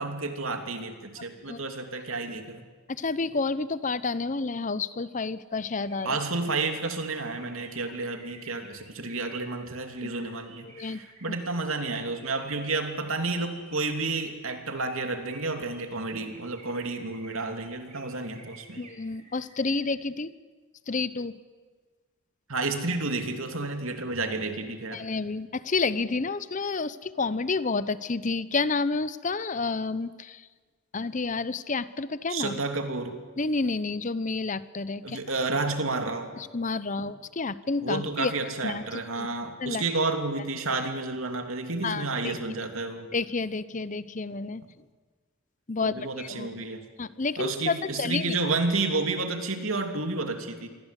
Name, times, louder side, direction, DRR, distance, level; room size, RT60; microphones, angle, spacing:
voice 1, 0.0-2.6 6.0-18.8 22.5-25.0 32.3-33.2 35.0-36.3 37.0-37.1 37.8-43.1 45.8-46.8 47.4-50.7, right 3 dB, 75° right, 6 dB, 2.8 m, -31 dB
voice 2, 2.9-6.2 10.0-10.1 10.6-11.0 18.8-20.3 20.9-21.4 24.9-30.5 30.9-32.6 33.4-35.2 36.4-38.3 38.6-39.3 39.6-39.8 41.8-42.3 43.1-44.6 45.7-46.5 47.0-48.4, left 3 dB, 35° left, 16 dB, 0.7 m, -30 dB
sound 1, 5.6-19.9, right 3 dB, 35° right, 4.6 m, -52 dB
27.5 x 22.5 x 8.3 m, 1.4 s
head